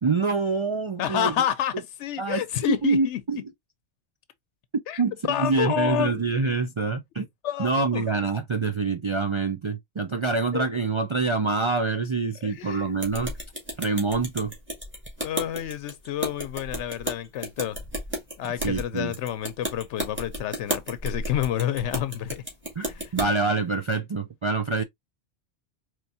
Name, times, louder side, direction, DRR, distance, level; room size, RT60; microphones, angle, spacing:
voice 1, 0.0-1.3 2.2-3.4 5.0-7.3 7.6-13.3 13.8-14.5 18.6-19.1 22.8-24.8, right 4 dB, 50° right, 0.3 m, -26 dB
voice 2, 1.0-3.2 4.9-5.0 5.3-6.1 7.4-8.1 10.1-10.2 10.5-10.6 12.4-13.0 15.2-17.8 18.4-22.4 22.8-23.1, left 11 dB, 90° left, 0.9 m, -29 dB
sound 1, 13.0-23.3, right 1 dB, 10° right, 2.0 m, -33 dB
4.5 x 3.2 x 2.6 m
omnidirectional pair, 1.2 m